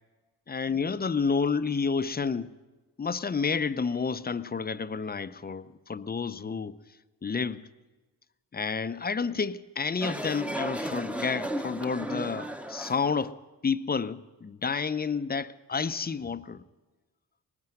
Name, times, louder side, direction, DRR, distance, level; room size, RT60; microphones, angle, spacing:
voice 1, 0.5-2.5 3.0-6.8 7.2-7.7 8.5-13.4 13.6-16.6, left 5 dB, 25° left, 0.6 m, -30 dB
sound 1, 10.0-13.3, right 1 dB, 5° right, 0.9 m, -34 dB
19.5 x 9.6 x 7.8 m
supercardioid pair, 45°, 40 cm